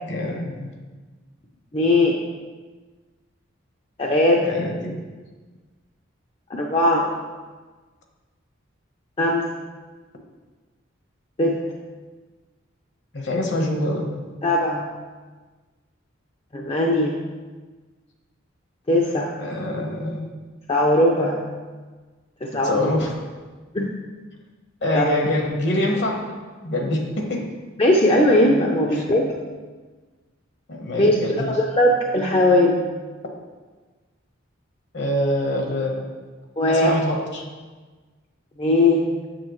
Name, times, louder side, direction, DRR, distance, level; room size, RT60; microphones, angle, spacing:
voice 1, 0.0-0.7 4.4-4.9 13.1-14.2 19.4-20.3 22.6-23.2 24.8-26.2 26.6-27.4 28.9-29.1 30.7-31.6 34.9-36.1 36.7-37.4, left 1 dB, 60° left, 2 dB, 1.1 m, -25 dB
voice 2, 1.7-2.1 4.0-4.5 6.5-7.1 9.2-9.5 11.4-11.6 14.4-14.9 16.5-17.1 18.9-19.3 20.7-21.5 22.4-22.9 23.7-23.9 24.9-25.0 27.8-29.3 31.0-31.1 31.7-32.8 36.6-36.9 38.6-39.0, left 1 dB, 30° left, 0 dB, 0.5 m, -19 dB
7.6 x 6.9 x 3.1 m, 1.4 s
head